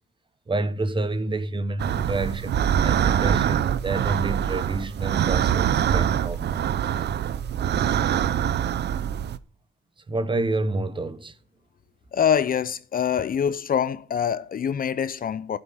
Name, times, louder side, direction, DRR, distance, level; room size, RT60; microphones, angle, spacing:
voice 1, 0.5-6.6 10.1-11.3, right 2 dB, 25° right, 1.0 m, -29 dB
sound 1, 1.8-9.4, right 9 dB, 60° right, 0.7 m, -24 dB
voice 2, 12.1-15.6, left 8 dB, 45° left, 0.7 m, -24 dB
12.0 x 8.0 x 5.7 m
cardioid pair, 90°, 20 cm